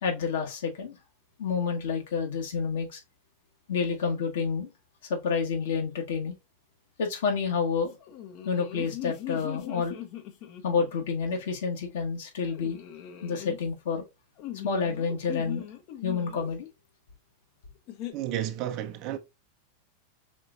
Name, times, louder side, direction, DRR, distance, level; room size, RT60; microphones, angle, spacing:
voice 1, 0.0-1.0 1.4-3.0 3.7-4.7 5.1-6.3 7.0-8.0 8.4-10.0 10.6-12.8 13.2-14.0 14.6-15.6 16.0-16.7, left 5 dB, 60° left, 1.4 m, -29 dB
sound 1, 8.0-11.0 12.5-13.6 14.4-16.5 17.9-18.1, left 12 dB, 40° left, 0.7 m, -40 dB
voice 2, 18.1-19.2, right 11 dB, 40° right, 0.6 m, -32 dB
5.3 x 3.9 x 2.5 m
figure-of-eight pair, 90°, 0 cm